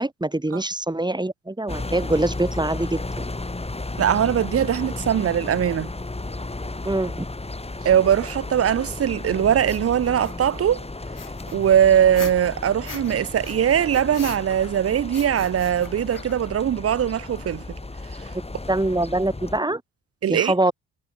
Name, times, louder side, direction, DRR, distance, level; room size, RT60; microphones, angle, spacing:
voice 1, 0.0-3.3 6.8-7.3 18.7-19.8 20.3-20.7, right 2 dB, 10° right, 6.1 m, -24 dB
sound 1, 1.7-19.6, left 2 dB, 15° left, 4.1 m, -34 dB
voice 2, 4.0-5.9 7.8-10.8 11.5-17.8 20.2-20.5, right 9 dB, 40° right, 0.8 m, -21 dB
sound 2, 8.2-8.3 9.6-10.6 11.2-13.2 13.4-14.8 15.1-16.6, left 10 dB, 60° left, 7.1 m, -41 dB
hypercardioid pair, 55°, 36 cm